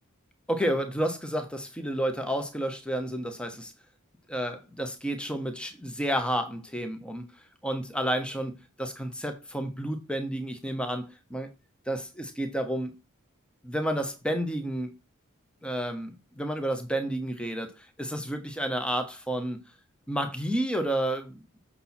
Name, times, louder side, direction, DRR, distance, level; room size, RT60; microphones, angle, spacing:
voice 1, 0.5-3.7 4.3-7.3 7.6-11.5 11.9-13.0 13.6-14.9 15.6-19.6 20.1-21.4, right 1 dB, 5° left, 1.1 m, -31 dB
7.9 x 5.9 x 4.2 m
head